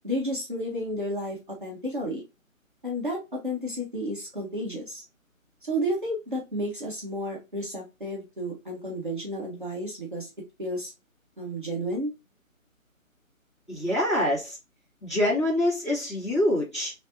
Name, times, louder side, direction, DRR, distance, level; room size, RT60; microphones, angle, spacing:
voice 1, 0.0-2.2 2.8-5.0 5.6-10.3 10.6-10.9 11.4-12.1, equal, 35° right, -3 dB, 1.0 m, -32 dB
voice 2, 13.7-14.6 15.0-16.9, left 1 dB, 20° left, -10 dB, 1.8 m, -25 dB
3.4 x 3.2 x 2.6 m, 0.24 s
figure-of-eight pair, 175°, 41 cm